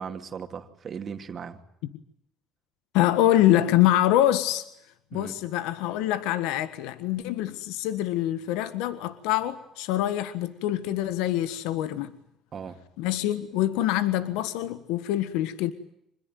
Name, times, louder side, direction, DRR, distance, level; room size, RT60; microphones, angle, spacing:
voice 1, 0.0-1.6 5.1-5.4 12.5-12.8, right 6 dB, 45° right, 2.6 m, -37 dB
voice 2, 2.9-4.7 5.1-12.1 13.0-15.7, left 13 dB, 85° left, 1.5 m, -25 dB
26.0 x 21.0 x 9.4 m
supercardioid pair, 85°, 0 cm